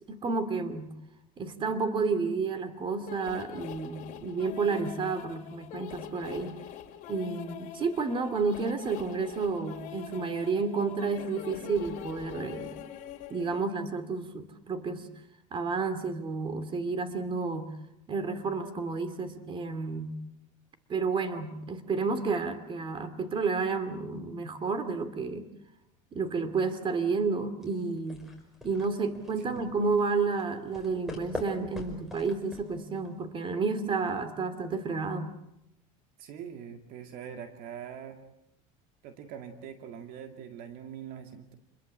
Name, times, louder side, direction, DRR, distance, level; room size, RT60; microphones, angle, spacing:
voice 1, 0.1-0.9 1.4-6.6 7.1-12.7 13.3-15.1 15.5-17.8 18.1-20.2 20.9-25.5 26.1-28.3 28.6-35.3, right 4 dB, 30° right, 11 dB, 2.5 m, -31 dB
sound 1, 3.1-13.6, left 10 dB, 50° left, 2.7 m, -43 dB
sound 2, 27.6-33.2, left 1 dB, ahead, 5.5 m, -43 dB
voice 2, 36.2-38.2 39.0-41.6, right 8 dB, 60° right, 6 dB, 2.1 m, -43 dB
27.5 x 21.5 x 7.5 m, 0.85 s
supercardioid pair, 125°, 17 cm